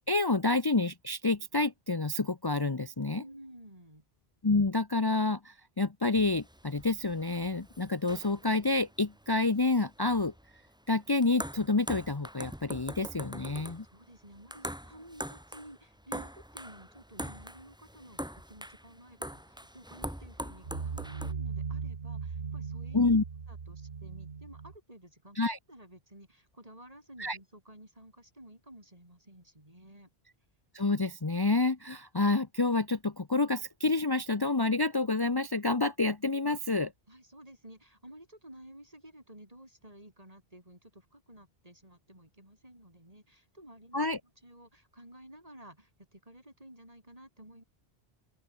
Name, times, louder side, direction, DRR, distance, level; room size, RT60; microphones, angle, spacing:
voice 1, 0.1-3.2 4.4-10.3 10.9-13.8 22.9-23.2 25.4-25.6 27.2-27.4 30.7-36.9 43.9-44.2, left 3 dB, 25° left, 0.9 m, -28 dB
voice 2, 3.1-4.0 13.8-23.1 23.5-25.4 25.7-30.1 37.1-44.0 44.4-47.6, right 1 dB, 35° right, 7.8 m, -53 dB
sound 1, 6.2-21.3, equal, 5° right, 1.8 m, -43 dB
sound 2, 20.6-24.8, right 5 dB, 75° right, 1.7 m, -38 dB
open air
omnidirectional pair, 1.0 m